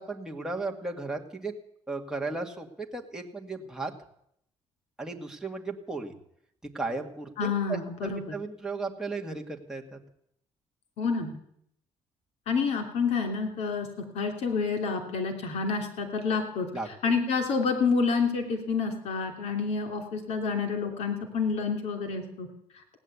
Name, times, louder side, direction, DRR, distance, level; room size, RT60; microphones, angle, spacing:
voice 1, 0.0-1.5 1.9-3.9 5.0-6.1 6.7-10.0 16.7-16.9, right 3 dB, 5° right, 1 dB, 1.9 m, -35 dB
voice 2, 7.4-8.4 11.0-11.3 12.5-16.7 17.0-22.5, left 5 dB, 70° left, 5 dB, 3.1 m, -28 dB
17.0 x 9.8 x 8.4 m, 0.73 s
cardioid pair, 160°, 11 cm